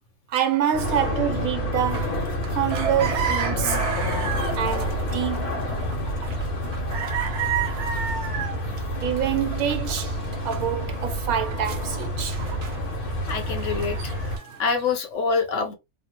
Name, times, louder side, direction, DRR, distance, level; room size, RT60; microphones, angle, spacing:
voice 1, 0.3-4.0 4.5-5.8 8.9-12.4, right 9 dB, 80° right, 1.2 m, -27 dB
sound 1, 0.7-14.4, equal, 85° left, 1.5 m, -28 dB
sound 2, 1.9-14.9, right 8 dB, 60° right, 0.9 m, -33 dB
voice 2, 13.3-14.1 14.6-15.7, left 5 dB, 65° left, 1.0 m, -25 dB
3.3 x 2.0 x 2.9 m
omnidirectional pair, 1.5 m